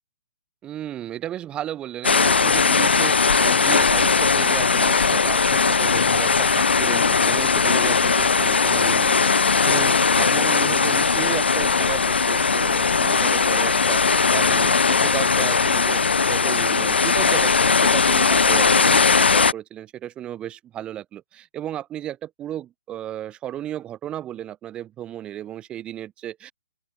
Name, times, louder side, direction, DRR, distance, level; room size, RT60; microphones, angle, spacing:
voice 1, 0.6-9.2 9.4-26.5, right 11 dB, 15° right, 1.3 m, -34 dB
sound 1, 2.0-19.5, left 5 dB, 75° left, 1.0 m, -19 dB
sound 2, 5.9-12.8, left 13 dB, 45° left, 4.1 m, -42 dB
open air
figure-of-eight pair, 130°, 6 cm